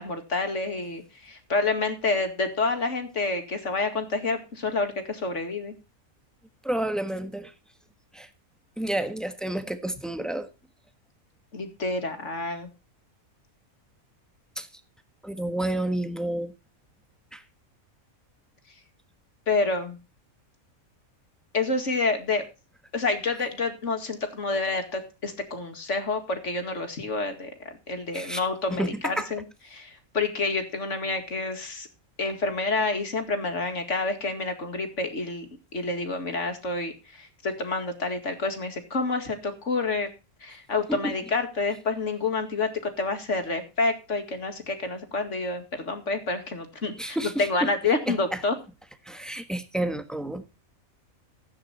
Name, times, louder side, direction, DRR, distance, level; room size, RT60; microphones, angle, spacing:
voice 1, 0.0-5.7 11.5-12.7 19.5-20.0 21.5-22.4 22.9-29.4 29.7-31.9 32.2-40.1 40.4-48.5, left 3 dB, 55° left, 2.5 m, -28 dB
voice 2, 6.6-7.5 8.1-8.3 8.8-10.5 14.6-14.7 15.2-16.5 17.3-17.4 28.1-28.4 28.7-29.3 40.9-41.1 47.0-47.7 48.1-48.4 49.0-50.4, right 1 dB, ahead, 1.3 m, -30 dB
15.0 x 8.9 x 4.2 m
omnidirectional pair, 1.5 m